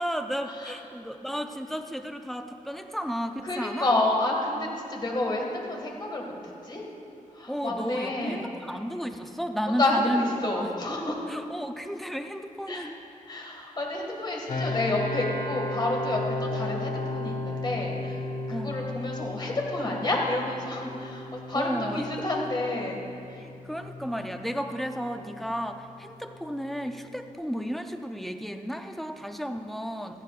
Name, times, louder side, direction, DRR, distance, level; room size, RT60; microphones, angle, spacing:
voice 1, 0.0-3.9 7.5-10.7 11.3-13.0 18.5-18.8 21.5-22.7 23.4-30.2, equal, ahead, 6 dB, 0.5 m, -33 dB
voice 2, 3.4-6.3 6.6-6.8 7.3-8.4 9.7-11.2 12.7-12.9 13.3-23.0 23.3-23.4, left 2 dB, 30° left, -1 dB, 2.0 m, -29 dB
sound 1, 14.5-27.3, left 2 dB, 60° left, 1.5 m, -36 dB
Piano, 14.8-16.8, right 4 dB, 70° right, 3.4 m, -47 dB
17.0 x 14.0 x 2.5 m, 2.7 s
wide cardioid pair, 130°, 14 cm